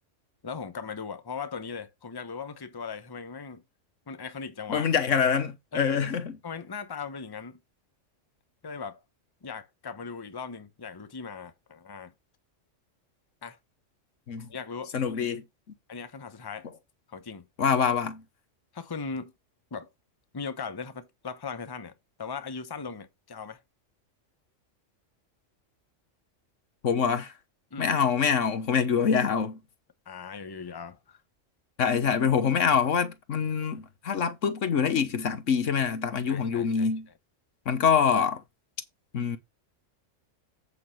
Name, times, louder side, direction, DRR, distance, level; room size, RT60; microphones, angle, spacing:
voice 1, 0.4-3.6 4.1-4.9 5.7-6.0 6.4-7.6 8.6-9.0 9.4-12.1 13.4-13.6 14.5-14.9 15.9-16.7 17.1-17.5 18.7-19.3 19.7-19.9 20.3-21.9 22.2-23.6 27.7-27.9 30.1-31.2 36.3-36.9, left 5 dB, 20° left, 0.9 m, -38 dB
voice 2, 4.7-6.3 14.3-14.5 14.9-15.4 17.6-18.2 26.8-27.3 27.8-29.6 31.8-37.1 37.6-38.4 39.1-39.4, left 6 dB, 75° left, 1.5 m, -25 dB
8.5 x 7.9 x 3.2 m
omnidirectional pair, 1.3 m